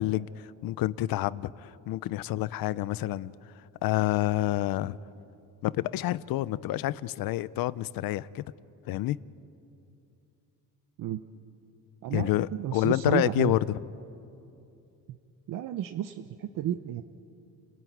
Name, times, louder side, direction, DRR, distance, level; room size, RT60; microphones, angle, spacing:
voice 1, 0.0-3.3 3.8-5.0 5.6-8.4 8.9-9.2 12.1-13.8, left 15 dB, 85° left, 0.6 m, -28 dB
voice 2, 12.0-13.5 15.1-15.2 15.5-17.0, right 11 dB, 70° right, 0.8 m, -32 dB
29.5 x 16.0 x 9.4 m
cardioid pair, 135°, 34 cm